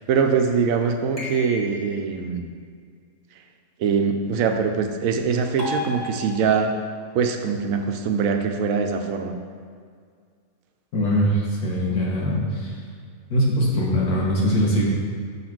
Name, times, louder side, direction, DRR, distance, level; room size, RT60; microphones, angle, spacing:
voice 1, 0.0-2.5 3.8-6.7 7.1-9.4, right 6 dB, 75° right, 6 dB, 1.0 m, -23 dB
sound 1, 1.2-2.1 5.6-6.8, left 2 dB, 30° left, 1.3 m, -33 dB
voice 2, 10.9-12.7 13.3-14.8, equal, 90° left, -4 dB, 1.9 m, -22 dB
5.9 x 4.1 x 5.9 m, 2.1 s
omnidirectional pair, 1.5 m